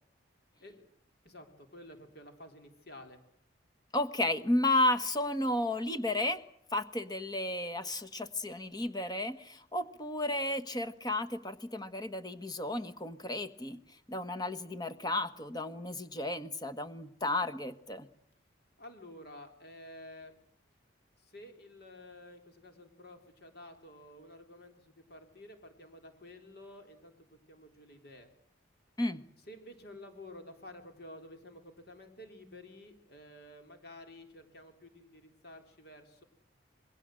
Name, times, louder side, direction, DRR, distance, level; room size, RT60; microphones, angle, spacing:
voice 1, 1.2-3.2 18.8-20.3 21.2-28.3 29.5-36.2, left 1 dB, 55° left, 6 dB, 3.8 m, -51 dB
voice 2, 3.9-6.4 6.7-18.1 29.0-29.2, left 1 dB, 20° left, 10 dB, 1.4 m, -33 dB
27.5 x 21.5 x 7.8 m, 0.67 s
head